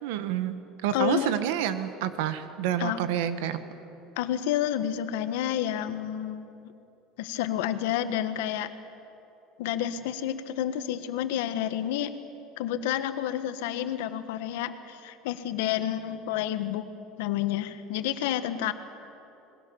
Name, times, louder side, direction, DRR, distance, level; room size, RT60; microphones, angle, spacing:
voice 1, 0.0-0.6 0.8-3.6, right 10 dB, 85° right, 11 dB, 1.6 m, -28 dB
voice 2, 0.9-1.3 2.8-3.0 4.2-6.5 7.2-8.7 9.6-12.1 12.6-16.9 17.2-18.7, left 11 dB, 90° left, 10 dB, 1.5 m, -29 dB
27.0 x 21.5 x 7.2 m, 2.9 s
cardioid pair, 135°, 0 cm